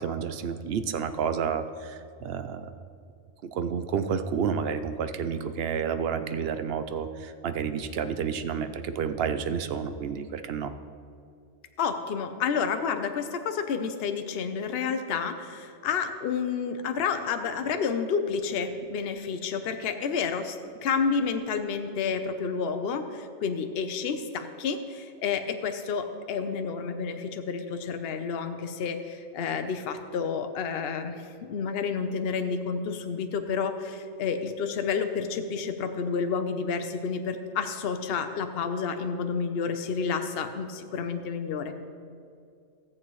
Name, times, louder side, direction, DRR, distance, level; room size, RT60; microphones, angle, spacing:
voice 1, 0.0-2.7 3.4-10.7, right 7 dB, 65° right, 10 dB, 0.7 m, -30 dB
voice 2, 11.8-20.6 20.8-41.8, left 6 dB, 60° left, 7 dB, 0.8 m, -30 dB
16.5 x 7.4 x 3.1 m, 2.4 s
omnidirectional pair, 1.3 m